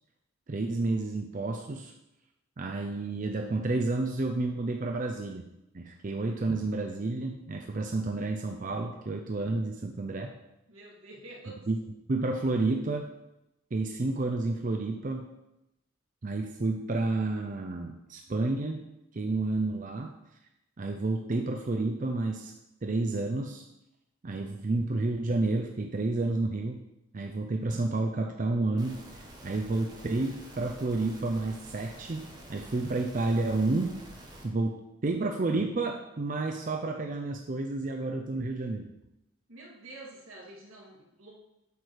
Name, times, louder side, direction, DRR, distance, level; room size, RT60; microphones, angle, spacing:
voice 1, 0.5-1.9 2.6-5.4 5.7-10.3 11.7-11.8 12.1-13.1 13.7-15.3 16.2-18.8 19.1-20.1 20.8-22.5 22.8-23.6 24.2-26.8 27.1-29.0 29.4-34.0 34.4-34.8 35.0-38.9, right 2 dB, 40° right, 3 dB, 0.5 m, -30 dB
voice 2, 10.7-11.6 39.5-41.3, right 2 dB, 80° right, -4 dB, 2.3 m, -48 dB
sound 1, 28.8-34.5, right 1 dB, 20° right, 1.2 m, -48 dB
7.9 x 4.7 x 4.9 m, 0.89 s
head